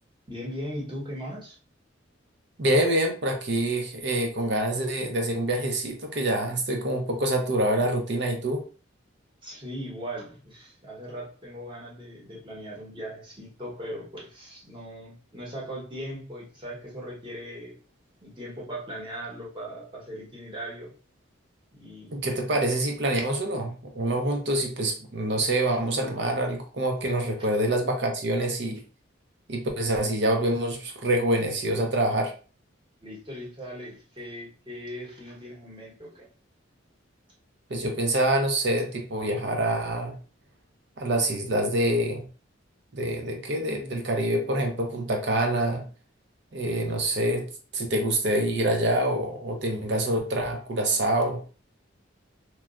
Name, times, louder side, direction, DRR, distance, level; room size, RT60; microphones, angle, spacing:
voice 1, 0.3-1.6 9.4-17.8 18.2-20.9 21.7-22.3 33.0-36.3, equal, 25° right, -4 dB, 1.0 m, -39 dB
voice 2, 2.6-8.6 22.1-28.8 29.5-32.3 37.7-40.2 41.0-42.2 42.9-45.9 46.5-51.4, right 1 dB, 60° right, 3 dB, 0.6 m, -26 dB
3.0 x 2.3 x 2.4 m, 0.37 s
head